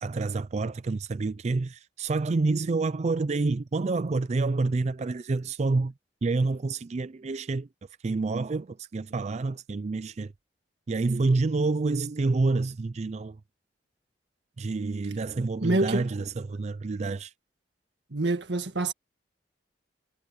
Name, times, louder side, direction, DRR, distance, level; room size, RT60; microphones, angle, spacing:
voice 1, 0.0-5.9 6.2-7.7 8.0-10.3 10.9-13.4 14.6-17.3, right 3 dB, 40° right, 0.4 m, -28 dB
voice 2, 15.6-16.1 18.1-18.9, right 2 dB, 75° right, 1.8 m, -26 dB
head